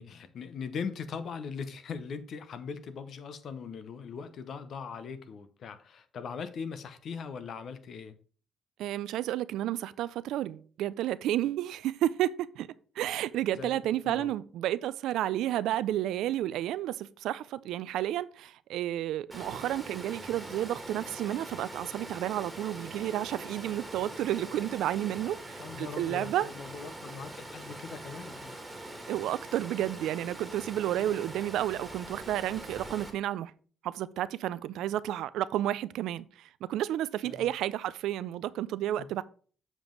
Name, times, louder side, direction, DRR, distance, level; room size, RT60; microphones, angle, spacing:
voice 1, 0.0-8.2 13.6-14.3 25.6-28.6 37.2-37.5 39.0-39.1, left 6 dB, 60° left, 0.8 m, -40 dB
voice 2, 8.8-12.7 13.0-26.5 29.1-33.5 33.8-39.2, right 12 dB, 85° right, 0.4 m, -31 dB
Water, 19.3-33.1, right 1 dB, 10° right, 1.7 m, -43 dB
7.4 x 5.2 x 3.8 m
cardioid pair, 90°, 0 cm